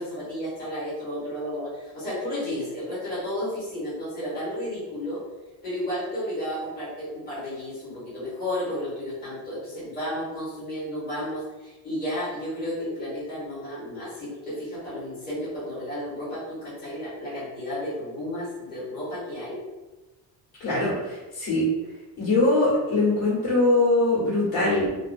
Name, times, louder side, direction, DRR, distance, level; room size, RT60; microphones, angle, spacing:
voice 1, 0.0-5.2 5.6-19.6, left 1 dB, 20° left, -11 dB, 1.3 m, -32 dB
voice 2, 20.6-21.6 22.2-24.9, left 2 dB, 65° left, -8 dB, 1.5 m, -22 dB
2.8 x 2.3 x 2.6 m, 1.1 s
cardioid pair, 175°, 42 cm